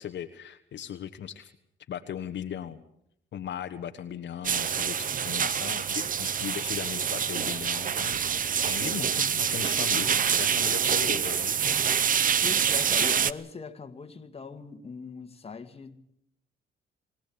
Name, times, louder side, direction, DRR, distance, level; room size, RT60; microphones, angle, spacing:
voice 1, 0.0-1.5 1.9-2.8 3.3-11.6, left 9 dB, 65° left, 1.3 m, -38 dB
sound 1, 4.4-13.3, right 7 dB, 45° right, 0.8 m, -26 dB
voice 2, 12.4-16.0, left 5 dB, 30° left, 1.9 m, -40 dB
22.5 x 17.0 x 8.7 m
cardioid pair, 90°, 20 cm